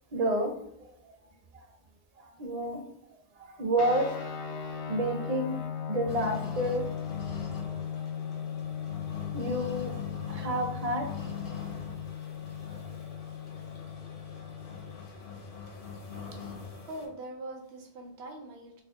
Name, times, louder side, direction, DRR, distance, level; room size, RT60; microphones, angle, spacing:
voice 1, 0.1-0.5 2.2-2.8 3.4-4.3 4.6-5.6 5.9-6.8 9.3-10.0 10.3-11.1 11.5-11.6 12.9-13.0, right 1 dB, 45° right, 3 dB, 0.6 m, -30 dB
sound 1, 3.8-15.0, left 8 dB, 85° left, 0.9 m, -38 dB
sound 2, 6.1-17.1, left 5 dB, 60° left, 0.8 m, -43 dB
voice 2, 16.9-18.8, right 1 dB, 75° right, 3 dB, 0.9 m, -42 dB
3.4 x 2.1 x 3.5 m, 0.73 s
omnidirectional pair, 1.1 m